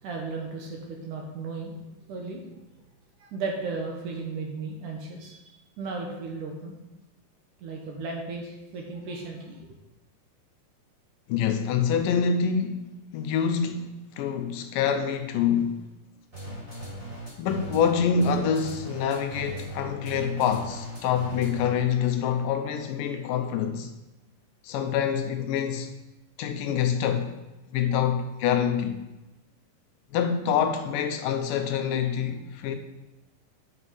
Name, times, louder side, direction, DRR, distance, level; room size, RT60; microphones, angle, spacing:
voice 1, 0.0-1.8 2.1-2.4 3.2-5.4 5.8-6.8 7.6-9.6, right 4 dB, 70° right, 2.4 m, -35 dB
voice 2, 11.3-12.8 13.1-15.8 17.4-23.9 24.6-25.9 26.4-27.3 27.7-29.0 30.1-32.8, left 7 dB, 80° left, 2.2 m, -26 dB
sound 1, 16.3-21.9, right 1 dB, 20° right, 3.9 m, -38 dB
9.7 x 6.0 x 5.5 m
omnidirectional pair, 4.1 m